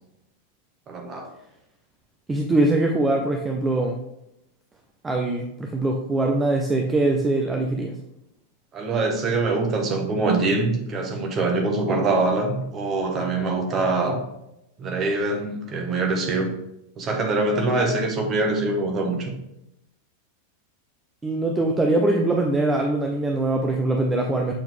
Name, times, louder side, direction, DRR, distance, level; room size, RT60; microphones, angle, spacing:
voice 1, 0.9-1.3 8.7-14.2 14.8-16.5 17.0-19.3, right 3 dB, 30° right, 2 dB, 1.4 m, -24 dB
voice 2, 2.3-4.0 5.0-8.0 21.2-24.5, right 2 dB, 15° right, 2 dB, 0.6 m, -22 dB
7.5 x 4.5 x 3.6 m, 0.83 s
figure-of-eight pair, 90°, 0 cm